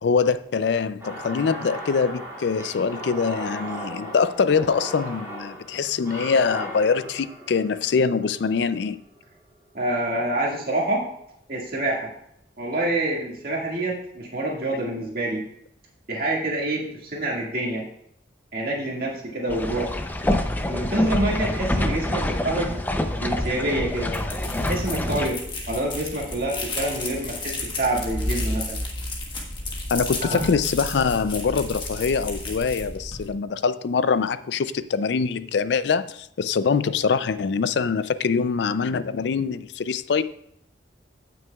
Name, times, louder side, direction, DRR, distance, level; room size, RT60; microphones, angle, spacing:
voice 1, 0.0-9.0 29.9-40.2, left 5 dB, 65° left, 0.4 m, -24 dB
sound 1, 1.0-9.2, right 1 dB, 15° right, 3.8 m, -37 dB
voice 2, 9.7-11.1 11.5-12.1 12.6-15.4 16.1-17.8 18.5-19.9 20.7-22.8 23.1-24.2 24.6-25.4 25.7-28.8 30.2-30.5, right 1 dB, 50° right, 1.9 m, -27 dB
sound 2, 19.5-25.3, left 1 dB, 10° left, 0.5 m, -26 dB
sound 3, 23.9-33.3, left 2 dB, 25° left, 1.3 m, -32 dB
16.0 x 6.1 x 2.3 m
head